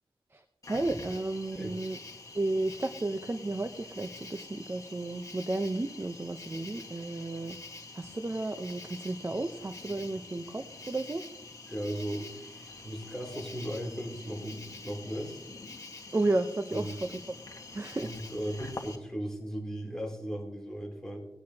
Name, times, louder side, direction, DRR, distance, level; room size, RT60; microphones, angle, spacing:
Cricket, 0.6-19.0, left 3 dB, 35° left, 1.5 m, -46 dB
voice 1, 0.7-2.0 2.3-7.6 7.9-11.2 16.1-17.4 17.7-18.1, right 2 dB, 25° right, 7 dB, 0.7 m, -33 dB
voice 2, 11.7-15.4 16.7-17.0 18.0-21.2, equal, 5° left, -2 dB, 3.2 m, -37 dB
19.0 x 9.6 x 2.9 m, 0.90 s
wide cardioid pair, 75°, 9 cm